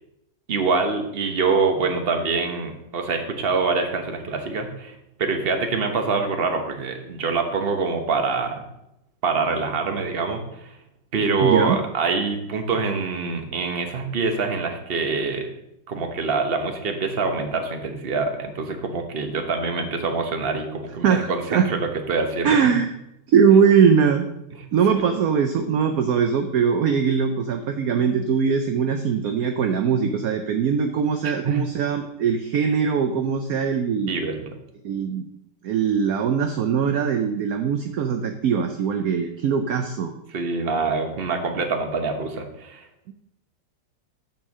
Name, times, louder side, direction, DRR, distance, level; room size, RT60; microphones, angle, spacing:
voice 1, 0.5-4.9 5.2-8.6 9.2-10.4 11.1-15.5 15.9-22.6 31.2-31.6 34.1-34.4 40.3-42.8, right 4 dB, 40° right, 5 dB, 1.1 m, -25 dB
voice 2, 11.4-11.8 21.0-21.7 22.4-22.9 23.3-24.3 24.7-34.1 34.8-35.2 35.6-40.1 43.1-43.2, right 6 dB, 65° right, 6 dB, 1.0 m, -21 dB
8.9 x 4.6 x 6.4 m, 0.83 s
omnidirectional pair, 1.9 m